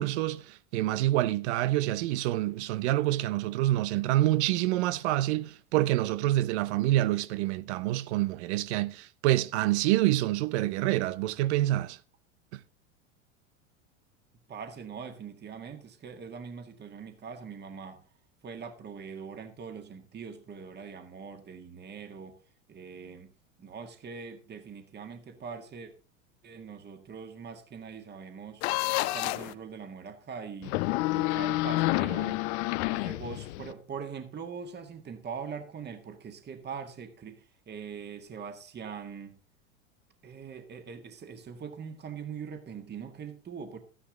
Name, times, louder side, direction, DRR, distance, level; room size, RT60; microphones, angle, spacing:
voice 1, 0.0-12.0 12.5-12.6, right 15 dB, 60° right, 0.9 m, -27 dB
voice 2, 14.5-18.0 18.4-22.4 22.7-23.3 23.6-25.9 26.4-28.6 29.1-30.8 31.1-32.4 32.9-39.4 40.2-43.8, right 6 dB, 25° right, 1.8 m, -42 dB
sound 1, 28.6-29.5 30.6-33.7, left 19 dB, 60° left, 0.8 m, -29 dB
12.5 x 10.0 x 3.8 m
hypercardioid pair, 95°, 38 cm